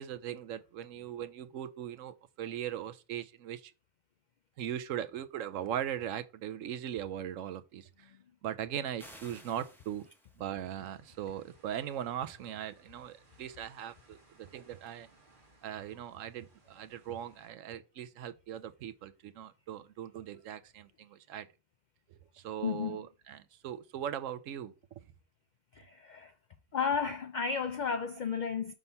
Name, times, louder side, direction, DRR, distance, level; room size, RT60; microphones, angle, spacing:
voice 1, 0.0-3.7 4.6-8.1 8.4-10.1 10.4-15.1 15.6-21.5 22.3-24.7, right 10 dB, 85° right, 1.0 m, -39 dB
sound 1, 9.0-10.6, equal, ahead, 1.0 m, -54 dB
sound 2, 10.6-17.5, right 2 dB, 40° right, 1.7 m, -64 dB
voice 2, 22.6-23.0 25.7-26.3 26.7-28.7, left 6 dB, 75° left, 0.4 m, -33 dB
5.3 x 3.6 x 5.6 m
omnidirectional pair, 1.3 m